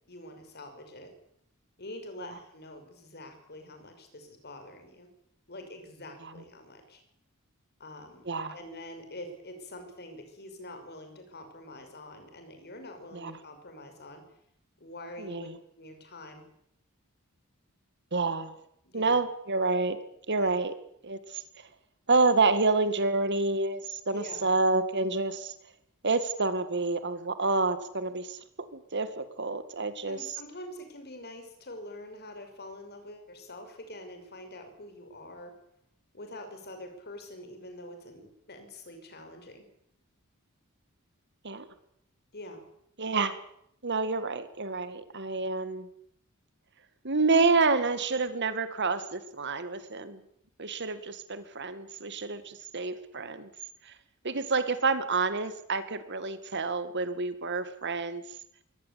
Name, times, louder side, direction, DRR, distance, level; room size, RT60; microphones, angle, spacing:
voice 1, 0.1-1.1 1.8-5.1 5.5-7.0 7.8-14.2 14.8-15.5 15.8-16.4 18.8-19.2 20.4-20.6 24.1-24.5 30.1-35.5 36.1-39.6 42.3-42.6, left 1 dB, 50° left, 6 dB, 5.8 m, -45 dB
voice 2, 15.2-15.6 18.1-18.5 18.9-20.0 20.3-20.7 21.0-21.4 22.1-25.5 26.0-28.4 28.7-30.2 41.4-41.7 43.0-43.4 43.8-45.9 47.0-50.2 50.6-53.5 53.9-54.0 54.2-58.2, right 3 dB, 55° right, 12 dB, 2.1 m, -28 dB
22.5 x 18.5 x 8.5 m, 0.72 s
head